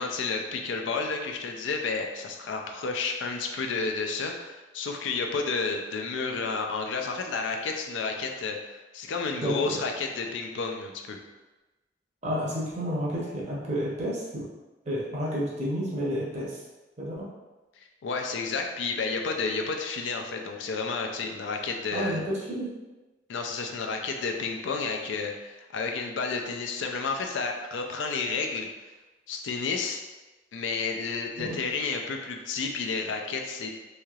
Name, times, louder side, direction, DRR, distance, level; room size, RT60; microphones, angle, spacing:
voice 1, 0.0-11.2 18.0-22.2 23.3-28.7 29.3-30.0 30.5-33.7, left 4 dB, 90° left, 3 dB, 0.4 m, -31 dB
voice 2, 9.4-9.8 12.2-14.5 14.9-16.6 17.0-17.3 21.9-22.7 31.4-31.6, equal, 40° right, -5 dB, 0.7 m, -30 dB
3.1 x 2.7 x 2.4 m, 1.1 s
head